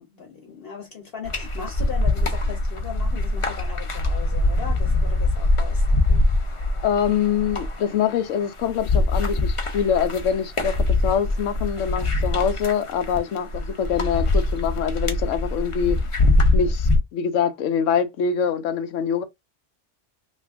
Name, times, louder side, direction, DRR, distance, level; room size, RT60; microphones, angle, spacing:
voice 1, 0.0-6.3, left 6 dB, 55° left, 0.9 m, -38 dB
sound 1, 1.2-17.0, left 2 dB, 35° left, 0.5 m, -23 dB
voice 2, 6.8-16.1 16.5-19.2, left 7 dB, 85° left, 1.0 m, -24 dB
2.9 x 2.4 x 3.4 m
omnidirectional pair, 1.3 m